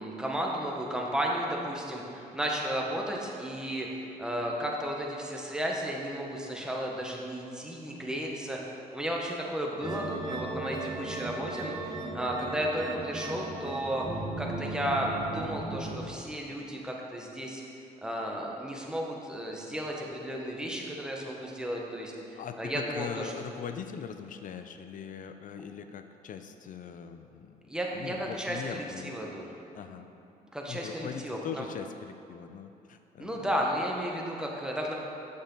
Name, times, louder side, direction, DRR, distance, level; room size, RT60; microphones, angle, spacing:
voice 1, 0.0-8.6 8.9-14.0 14.4-17.6 18.0-23.3 27.7-29.5 30.5-31.7 33.2-34.9, equal, 5° right, -2 dB, 1.4 m, -33 dB
sound 1, 9.8-16.1, right 2 dB, 25° right, 1.3 m, -36 dB
voice 2, 22.4-27.6 27.9-29.3 29.7-30.1 30.7-33.5, left 7 dB, 55° left, 8 dB, 0.6 m, -41 dB
8.5 x 6.3 x 4.0 m, 2.9 s
supercardioid pair, 75°, 17 cm